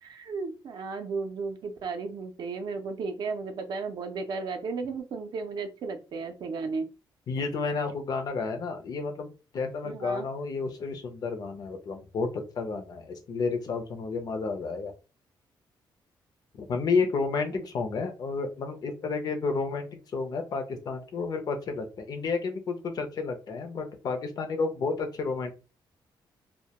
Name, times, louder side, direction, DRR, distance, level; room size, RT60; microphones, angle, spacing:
voice 1, 0.0-6.9 9.8-10.3 17.5-17.6, right 4 dB, 55° right, 7 dB, 0.4 m, -34 dB
voice 2, 7.3-14.9 16.6-25.5, left 4 dB, 50° left, 6 dB, 0.5 m, -31 dB
2.1 x 2.1 x 2.8 m, 0.32 s
cardioid pair, 145°, 9 cm